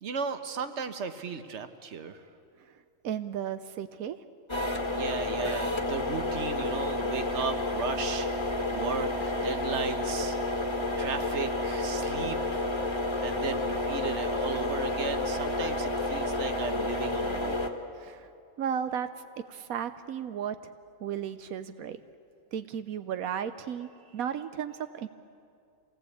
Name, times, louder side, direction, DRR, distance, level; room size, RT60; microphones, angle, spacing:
voice 1, 0.0-2.2 4.9-8.3 8.7-10.4 11.0-12.7 13.2-17.6, right 5 dB, 55° right, 9 dB, 1.4 m, -36 dB
voice 2, 3.0-4.2 18.0-18.3 18.6-19.1 19.5-20.7 21.0-22.0 22.5-25.1, right 8 dB, 85° right, 10 dB, 1.2 m, -34 dB
sound 1, 4.5-17.7, left 2 dB, 20° left, 1.4 m, -30 dB
26.5 x 18.0 x 8.5 m, 2.5 s
omnidirectional pair, 1.4 m